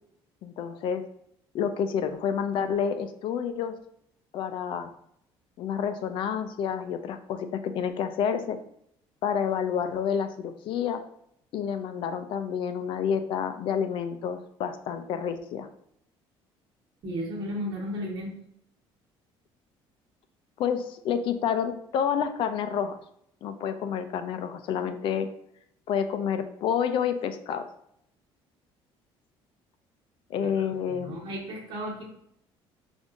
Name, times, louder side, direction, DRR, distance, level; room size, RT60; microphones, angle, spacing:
voice 1, 0.4-1.0 1.5-3.8 4.3-4.9 5.6-8.6 9.2-11.0 11.5-15.7 20.6-23.0 23.4-25.3 25.9-27.7 30.3-31.2, left 7 dB, 55° left, 9 dB, 0.4 m, -29 dB
voice 2, 17.0-18.3 30.4-32.0, equal, 55° right, -3 dB, 1.3 m, -34 dB
5.2 x 2.6 x 2.4 m, 0.72 s
cardioid pair, 140°, 10 cm